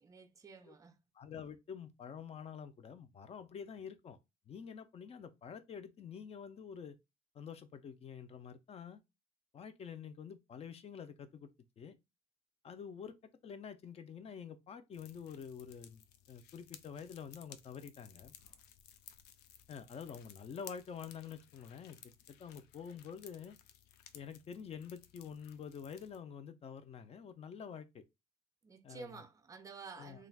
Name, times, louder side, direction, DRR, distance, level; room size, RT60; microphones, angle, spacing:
voice 1, 0.0-0.9 28.6-30.3, right 4 dB, 20° right, 0.5 m, -51 dB
voice 2, 1.1-4.2 4.5-7.0 7.3-9.0 9.5-11.5 11.8-12.0 12.6-13.2 13.4-18.3 19.7-22.0 22.3-23.6 24.1-28.0 28.8-29.2 30.0-30.2, left 7 dB, 35° left, 0.5 m, -48 dB
sound 1, 14.9-26.2, left 9 dB, 90° left, 0.4 m, -58 dB
3.2 x 2.4 x 2.3 m
cardioid pair, 110°, 17 cm